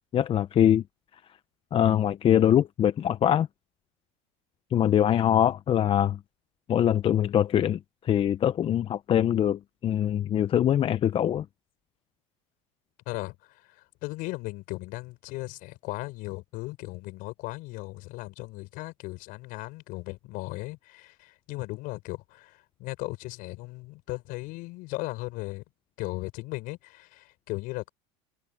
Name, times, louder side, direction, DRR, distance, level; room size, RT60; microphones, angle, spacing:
voice 1, 0.1-0.8 1.7-3.5 4.7-6.2 6.7-11.5, left 10 dB, 35° left, 0.7 m, -23 dB
voice 2, 13.1-25.6 26.0-27.9, left 22 dB, 65° left, 6.8 m, -37 dB
supercardioid pair, 105°, 16 cm